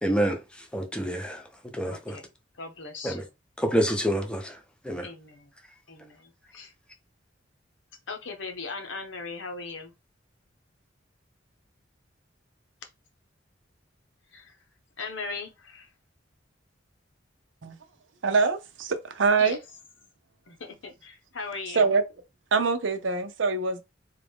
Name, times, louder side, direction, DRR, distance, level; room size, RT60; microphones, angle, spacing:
voice 1, 0.0-1.4 1.7-2.2 3.0-3.2 3.6-4.6 4.8-5.1, equal, 5° left, 0.7 m, -27 dB
voice 2, 1.8-2.3 2.5-3.3 5.0-5.5 5.9-6.7 8.1-9.9 14.3-14.6 15.0-15.9 19.4-19.6 20.5-21.9, left 4 dB, 80° left, 1.0 m, -39 dB
voice 3, 18.2-19.6 21.7-22.0 22.5-23.8, right 4 dB, 75° right, 0.7 m, -24 dB
3.9 x 2.5 x 3.5 m
head